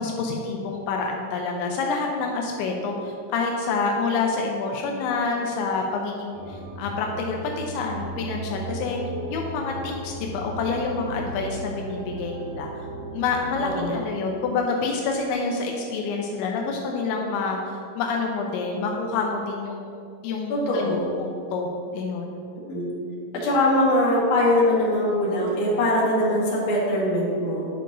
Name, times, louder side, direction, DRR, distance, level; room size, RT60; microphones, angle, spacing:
voice 1, 0.0-9.0 9.3-12.7 13.1-20.0 20.2-22.4, left 4 dB, 85° left, 1 dB, 2.9 m, -27 dB
sound 1, 6.3-13.8, right 1 dB, 80° right, 2.0 m, -36 dB
voice 2, 13.6-14.0 20.5-21.1 22.7-22.9 23.3-27.7, left 1 dB, 60° left, -6 dB, 2.4 m, -22 dB
10.0 x 6.5 x 2.6 m, 2.4 s
omnidirectional pair, 5.3 m